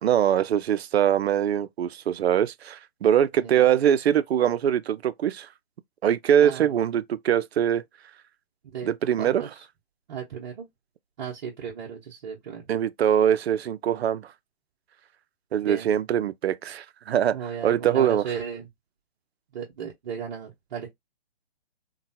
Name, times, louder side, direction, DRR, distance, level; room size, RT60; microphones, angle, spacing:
voice 1, 0.0-5.5 6.0-7.8 8.9-9.4 12.7-14.3 15.5-17.4 17.6-18.2, right 9 dB, 75° right, 0.5 m, -23 dB
voice 2, 6.4-6.8 8.6-8.9 9.2-9.6 10.1-10.6 11.2-12.6 15.6-15.9 17.3-18.7 19.5-20.9, right 7 dB, 45° right, 0.9 m, -35 dB
2.9 x 2.2 x 2.7 m
hypercardioid pair, 140°, 32 cm